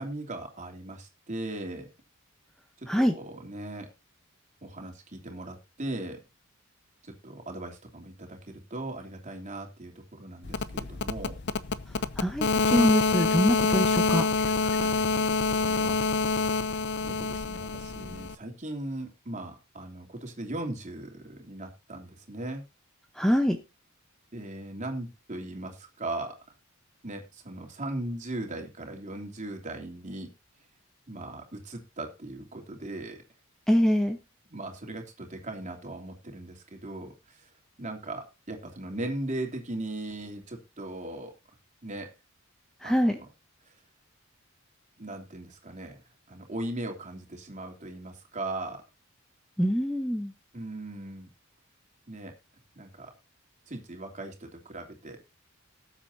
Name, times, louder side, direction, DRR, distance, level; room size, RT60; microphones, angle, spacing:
voice 1, 0.0-1.9 2.8-3.9 4.6-6.2 7.0-11.4 14.8-16.1 17.0-22.6 24.3-26.4 27.0-30.3 31.1-33.2 34.5-37.5 37.8-41.3 41.8-42.1 42.8-43.3 43.7-43.8 45.0-46.0 46.3-48.8 50.5-51.3 52.1-52.3 52.7-53.1 53.7-55.2, right 2 dB, 35° right, 2 dB, 3.2 m, -38 dB
sound 1, 10.4-18.3, left 4 dB, 55° left, 0.7 m, -27 dB
voice 2, 12.2-14.2 23.2-23.6 33.7-34.2 42.8-43.2 49.6-50.3, equal, ahead, 5 dB, 0.9 m, -24 dB
19.0 x 8.1 x 2.8 m, 0.25 s
head